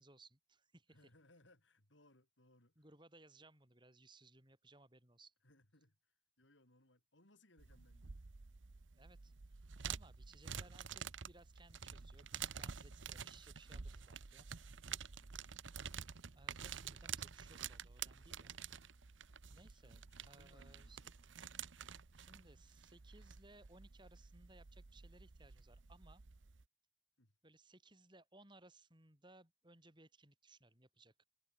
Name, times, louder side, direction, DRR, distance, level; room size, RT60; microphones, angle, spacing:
voice 1, 0.0-1.0 2.8-5.3 8.9-14.5 15.1-15.2 16.3-18.5 19.5-21.0 22.2-26.2 27.4-31.2, right 2 dB, 25° right, 5.4 m, -64 dB
voice 2, 0.9-2.8 5.4-8.2 15.2-15.6 19.7-21.1 27.2-27.4, left 1 dB, 75° left, 5.5 m, -69 dB
sound 1, 7.6-26.6, right 7 dB, 80° right, 0.9 m, -49 dB
head